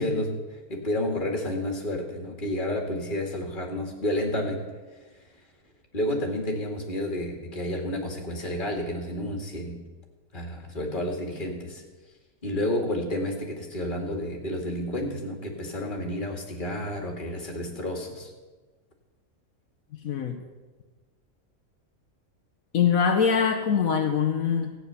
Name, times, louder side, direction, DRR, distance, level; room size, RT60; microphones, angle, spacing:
voice 1, 0.0-4.7 5.9-9.8 10.3-11.8 12.4-18.3, left 1 dB, 35° left, 2 dB, 2.1 m, -30 dB
voice 2, 20.0-20.4 22.7-24.8, left 7 dB, 75° left, 4 dB, 1.4 m, -23 dB
15.0 x 9.2 x 6.8 m, 1.3 s
omnidirectional pair, 1.5 m